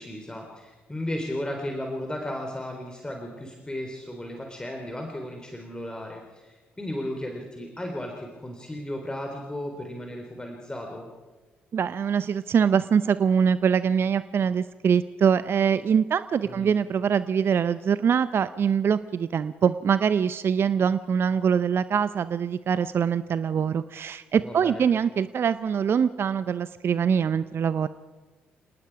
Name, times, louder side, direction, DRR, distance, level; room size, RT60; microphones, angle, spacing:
voice 1, 0.0-11.1 16.4-16.7 24.4-24.8, left 1 dB, 15° left, 2 dB, 3.9 m, -35 dB
voice 2, 11.7-27.9, right 7 dB, 50° right, 14 dB, 0.6 m, -23 dB
28.5 x 19.0 x 4.8 m, 1.3 s
hypercardioid pair, 45°, 5 cm